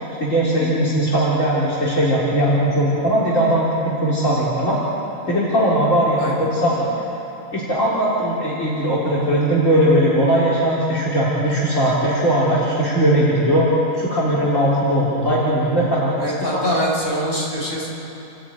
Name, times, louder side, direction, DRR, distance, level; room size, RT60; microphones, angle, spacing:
voice 1, 0.2-4.8 5.3-6.9 7.5-16.7, right 1 dB, 65° left, -7 dB, 4.0 m, -19 dB
voice 2, 6.2-6.5 16.2-17.9, equal, 40° left, -4 dB, 5.7 m, -23 dB
29.5 x 14.0 x 9.2 m, 3.0 s
omnidirectional pair, 1.4 m